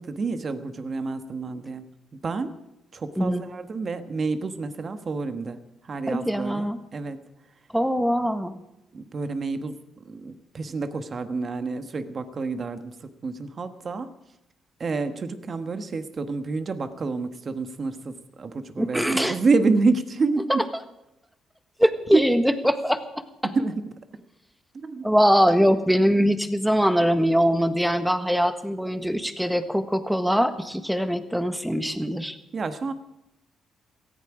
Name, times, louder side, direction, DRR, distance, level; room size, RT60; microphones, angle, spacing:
voice 1, 0.0-1.9 2.1-2.6 2.9-7.2 8.9-14.1 14.8-20.6 22.1-22.2 23.5-23.9 24.8-25.1 32.5-32.9, right 4 dB, 40° right, 9 dB, 1.5 m, -28 dB
voice 2, 6.1-6.8 7.7-8.6 18.8-19.4 20.5-20.6 21.8-23.0 23.4-23.5 25.0-32.3, equal, ahead, 9 dB, 1.4 m, -22 dB
18.0 x 14.5 x 5.0 m, 0.90 s
cardioid pair, 90°, 0 cm